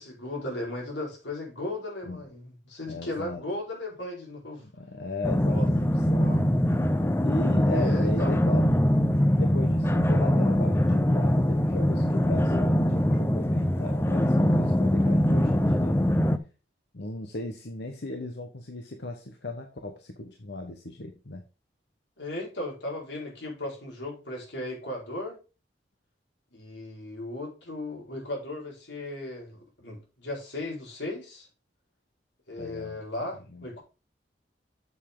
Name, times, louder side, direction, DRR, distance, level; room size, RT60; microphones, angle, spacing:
voice 1, 0.0-4.6 5.5-5.7 6.2-6.4 7.7-8.3 22.2-25.4 26.5-31.5 32.5-33.8, left 1 dB, 85° left, 4.8 m, -36 dB
voice 2, 2.9-3.4 4.6-6.4 7.2-8.7 9.0-16.2 16.9-21.4 32.6-33.0 33.5-33.7, left 2 dB, 65° left, 1.1 m, -37 dB
sound 1, 5.2-16.4, equal, 15° left, 0.6 m, -23 dB
8.2 x 7.2 x 3.8 m
head